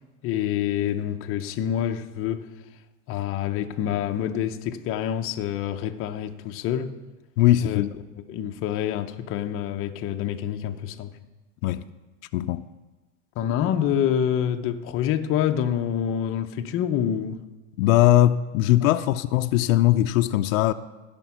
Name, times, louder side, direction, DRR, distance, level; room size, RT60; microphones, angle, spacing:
voice 1, 0.2-2.5 3.1-6.9 7.6-7.8 8.3-11.1 13.4-17.4 18.8-18.9, left 10 dB, 35° left, 0.7 m, -27 dB
voice 2, 7.4-7.9 11.6-11.8 12.3-12.6 17.8-20.7, left 14 dB, 80° left, 0.6 m, -20 dB
15.5 x 5.3 x 5.8 m
supercardioid pair, 140°, 40 cm